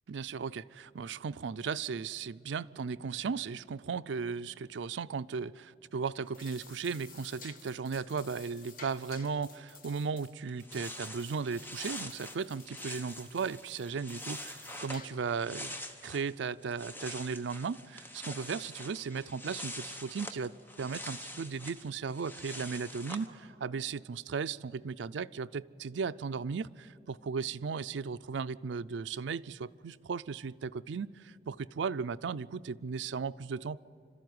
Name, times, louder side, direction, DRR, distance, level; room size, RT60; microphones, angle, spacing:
voice 1, 0.1-20.5 20.8-33.8, right 5 dB, 80° right, 14 dB, 0.4 m, -36 dB
sound 1, 6.2-15.4, left 5 dB, 45° left, 1.3 m, -54 dB
sound 2, 10.5-16.3 16.6-23.3, left 1 dB, 10° left, 1.0 m, -45 dB
26.5 x 13.0 x 9.5 m, 2.6 s
head